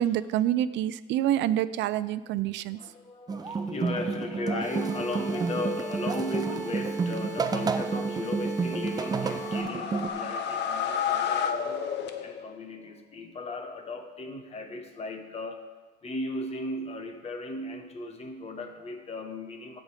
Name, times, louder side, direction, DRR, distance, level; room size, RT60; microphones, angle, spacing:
voice 1, 0.0-2.8, right 12 dB, 85° right, 16 dB, 0.5 m, -27 dB
voice 2, 2.7-11.9 12.2-15.6 16.0-19.8, left 2 dB, 35° left, 6 dB, 1.3 m, -36 dB
sound 1, 3.3-10.1, right 4 dB, 20° right, 0.5 m, -30 dB
sound 2, 4.6-9.6, right 3 dB, 5° right, 3.1 m, -38 dB
sound 3, 8.9-12.6, left 7 dB, 75° left, 1.0 m, -31 dB
15.5 x 5.2 x 5.0 m, 1.3 s
cardioid pair, 150°, 18 cm